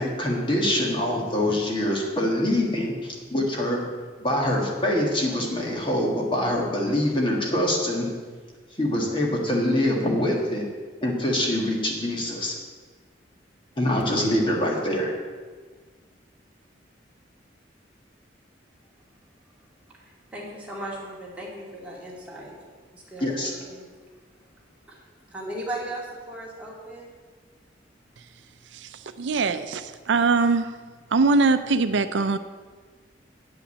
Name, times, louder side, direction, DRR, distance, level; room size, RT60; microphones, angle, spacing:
voice 1, 0.0-3.8 4.2-8.1 8.8-10.7 11.0-12.5 13.8-15.1 23.2-23.5, left 1 dB, 25° left, -1 dB, 1.7 m, -24 dB
voice 2, 19.9-22.5 22.9-23.9 24.9-27.1, right 1 dB, 10° right, -5 dB, 2.5 m, -37 dB
voice 3, 29.2-30.7 31.1-32.4, right 4 dB, 80° right, 11 dB, 0.5 m, -21 dB
9.1 x 5.9 x 8.2 m, 1.5 s
head